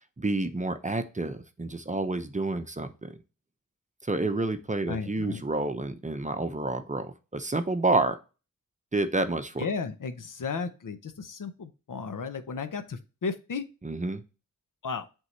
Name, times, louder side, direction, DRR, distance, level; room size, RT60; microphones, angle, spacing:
voice 1, 0.2-3.1 4.1-8.2 8.9-9.7 13.8-14.2, right 2 dB, 20° right, 8 dB, 0.7 m, -29 dB
voice 2, 4.9-5.4 9.6-13.7 14.8-15.1, left 5 dB, 70° left, 9 dB, 0.8 m, -34 dB
8.0 x 3.7 x 3.2 m, 0.31 s
wide cardioid pair, 85°, 33 cm